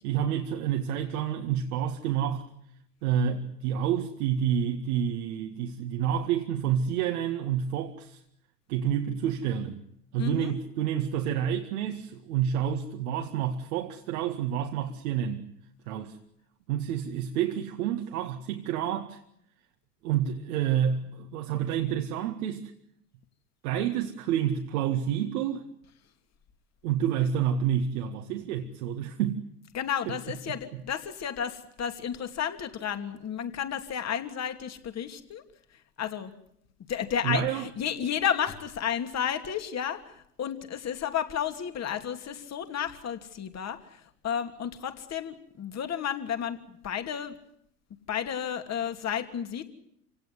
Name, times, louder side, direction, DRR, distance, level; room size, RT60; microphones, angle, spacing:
voice 1, 0.0-2.5 3.0-8.2 8.7-9.8 10.1-15.5 15.9-16.2 16.7-19.2 20.0-22.7 23.6-25.7 26.8-29.4 30.1-30.2 37.2-37.7, right 9 dB, 60° right, 2.1 m, -29 dB
voice 2, 10.2-10.5 29.7-35.4 36.0-36.3 36.9-40.0 40.4-47.4 48.1-49.6, left 8 dB, 35° left, 3.0 m, -32 dB
28.0 x 18.0 x 9.8 m
hypercardioid pair, 85°, 48 cm